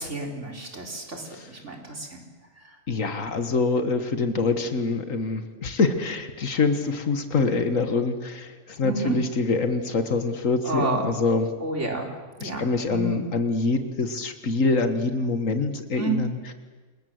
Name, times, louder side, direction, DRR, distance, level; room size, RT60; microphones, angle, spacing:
voice 1, 0.0-2.2 8.8-9.1 10.6-11.0 11.6-12.1 12.4-12.6 12.9-13.2 16.0-16.2, right 2 dB, 65° right, 1 dB, 4.2 m, -30 dB
voice 2, 2.9-11.5 12.4-16.5, left 3 dB, 85° left, 8 dB, 2.0 m, -25 dB
28.0 x 21.5 x 7.9 m, 1.4 s
omnidirectional pair, 1.3 m